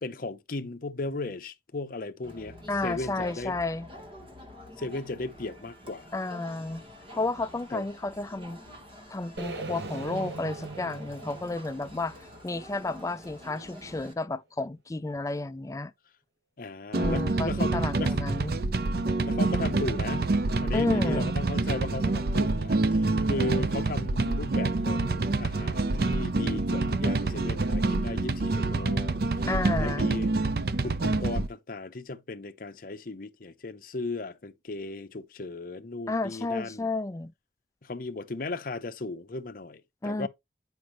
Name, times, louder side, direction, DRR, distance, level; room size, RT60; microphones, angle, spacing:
voice 1, 0.0-2.6 2.8-3.6 4.8-6.1 7.7-7.9 16.6-18.2 19.2-29.5 29.8-30.3 30.8-36.9 37.8-40.3, left 2 dB, 50° left, 0.7 m, -36 dB
Crowd, 2.2-14.1, left 1 dB, 30° right, 1.5 m, -47 dB
voice 2, 2.7-3.9 6.1-6.8 7.1-8.6 9.1-15.9 16.9-18.6 20.7-21.3 29.5-30.1 36.1-37.3 40.0-40.3, left 2 dB, 20° left, 0.4 m, -32 dB
sound 1, 9.4-13.4, right 3 dB, 75° right, 1.1 m, -40 dB
sound 2, 16.9-31.5, right 2 dB, 60° right, 0.6 m, -27 dB
9.2 x 5.2 x 3.0 m
head